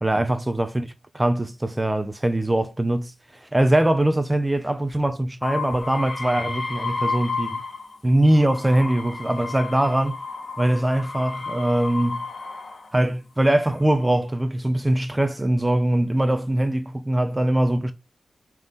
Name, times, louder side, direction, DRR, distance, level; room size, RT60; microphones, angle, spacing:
voice 1, 0.0-7.6 8.0-10.2 10.6-12.2 12.9-17.9, right 1 dB, 15° right, 1.2 m, -22 dB
sound 1, 5.4-8.0 8.3-12.9 13.6-14.2, left 4 dB, 50° left, 2.3 m, -32 dB
6.0 x 4.6 x 5.6 m
cardioid pair, 65°, 0 cm